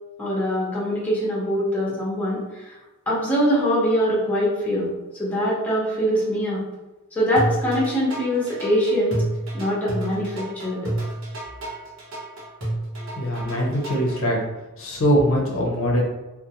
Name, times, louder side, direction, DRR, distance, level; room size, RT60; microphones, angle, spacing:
voice 1, 0.2-2.7 3.1-4.9 5.2-6.6 7.1-9.2 9.5-10.8, equal, 10° left, -7 dB, 0.7 m, -23 dB
sound 1, 7.4-14.2, right 1 dB, 65° right, 0.8 m, -29 dB
voice 2, 13.1-14.4 14.8-16.0, equal, 65° left, -2 dB, 0.5 m, -22 dB
2.5 x 2.0 x 2.8 m, 1.1 s
head